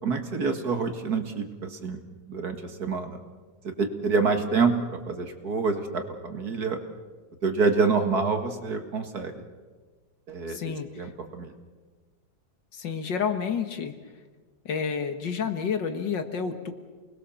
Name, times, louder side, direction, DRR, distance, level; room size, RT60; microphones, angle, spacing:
voice 1, 0.0-2.0 2.3-3.2 3.6-6.8 7.4-9.4 10.3-11.5, right 4 dB, 50° right, 6 dB, 2.3 m, -27 dB
voice 2, 10.5-11.1 12.7-13.9 14.7-16.7, left 6 dB, 65° left, 7 dB, 2.2 m, -30 dB
28.5 x 20.5 x 7.1 m, 1.4 s
omnidirectional pair, 2.1 m